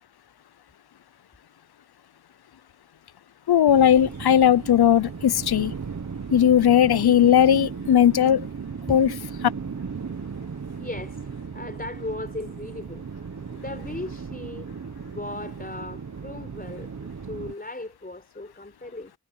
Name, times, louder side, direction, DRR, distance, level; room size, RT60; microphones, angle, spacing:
voice 1, 3.5-5.7 6.3-8.5 8.9-9.1, left 9 dB, 85° left, 0.7 m, -18 dB
sound 1, 3.7-17.5, right 5 dB, 50° right, 1.2 m, -36 dB
voice 2, 10.8-11.2 11.5-13.0 13.3-14.7 15.1-16.9 17.2-19.1, left 2 dB, 25° left, 4.2 m, -37 dB
wide cardioid pair, 75°, 37 cm